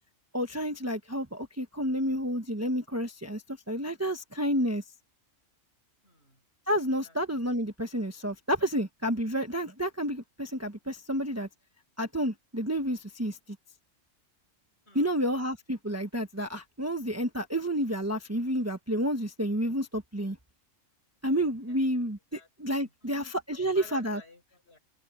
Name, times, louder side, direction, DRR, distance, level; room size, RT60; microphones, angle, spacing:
voice 1, 0.3-4.8 6.7-11.5 12.0-13.4 14.9-20.4 21.2-23.2 23.6-24.2, equal, 10° right, 1.2 m, -30 dB
voice 2, 6.0-6.4 7.0-7.2 14.9-15.2 21.7-21.8 22.3-22.5 22.8-24.8, left 1 dB, 50° left, 6.2 m, -54 dB
omnidirectional pair, 1.4 m